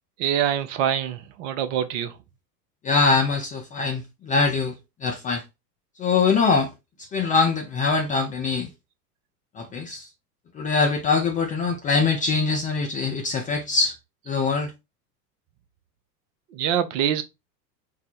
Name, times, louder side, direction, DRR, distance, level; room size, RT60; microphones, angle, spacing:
voice 1, 0.2-2.1 16.5-17.2, right 9 dB, 50° right, 0.8 m, -25 dB
voice 2, 2.8-4.7 5.0-5.4 6.0-6.7 7.0-8.7 9.6-10.1 10.5-14.0 14.3-14.7, left 4 dB, 15° left, 0.4 m, -23 dB
4.5 x 2.1 x 4.2 m
hypercardioid pair, 85°, 50 cm